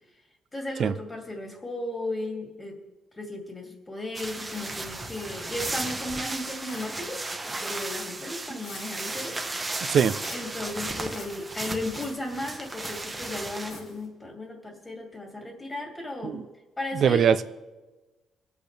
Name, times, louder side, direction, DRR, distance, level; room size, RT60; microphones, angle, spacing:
voice 1, 0.5-2.8 3.1-9.4 10.3-16.4 16.8-17.4, left 1 dB, 25° left, 2.6 m, -35 dB
sound 1, 4.1-13.7, right 2 dB, 20° right, 1.1 m, -35 dB
sound 2, 4.5-5.0 5.6-6.1 6.7-7.1 7.6-8.1 8.6-9.1 10.2-10.6 11.1-11.4 11.9-12.3 12.8-13.2 13.7-14.1, left 2 dB, 80° left, 4.7 m, -46 dB
voice 2, 16.9-17.4, right 8 dB, 60° right, 0.6 m, -21 dB
25.0 x 8.4 x 3.4 m
cardioid pair, 90°, 0 cm